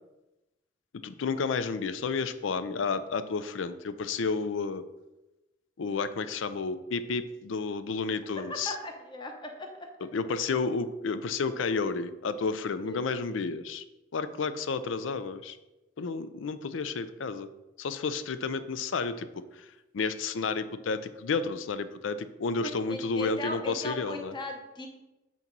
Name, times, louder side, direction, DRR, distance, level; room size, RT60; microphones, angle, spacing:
voice 1, 0.9-4.8 5.8-8.7 10.1-13.8 14.1-15.6 16.0-17.5 17.8-19.4 19.9-24.3, left 4 dB, 85° left, 13 dB, 0.5 m, -31 dB
voice 2, 8.7-9.9 12.8-13.1 22.6-24.9, left 1 dB, 25° left, 3 dB, 0.9 m, -38 dB
8.4 x 3.0 x 5.3 m, 1.0 s
head